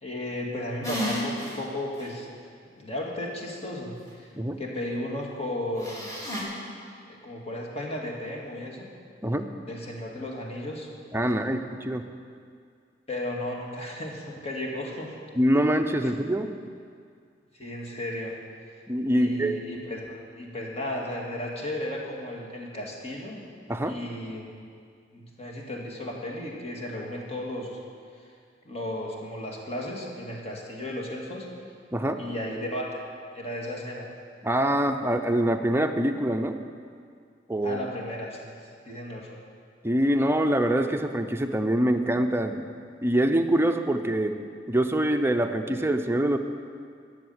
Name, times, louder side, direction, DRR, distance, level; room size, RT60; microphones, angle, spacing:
voice 1, 0.0-2.3 2.8-4.3 4.6-6.1 7.1-8.9 9.7-10.9 13.1-15.1 17.6-18.3 19.1-23.4 23.9-24.5 25.1-27.8 28.7-31.5 32.2-33.0 33.3-34.1 37.6-39.3, left 1 dB, 35° left, -2 dB, 2.2 m, -34 dB
sound 1, 0.8-1.5 2.0-2.1 5.8-6.4, equal, 20° left, 2.7 m, -31 dB
voice 2, 11.1-12.0 15.4-16.5 18.9-19.5 23.7-24.0 31.9-32.2 34.4-36.6 37.5-37.8 39.8-42.7 43.0-44.4 44.7-46.4, right 1 dB, 15° right, 6 dB, 0.6 m, -24 dB
13.0 x 7.2 x 9.5 m, 2.2 s
head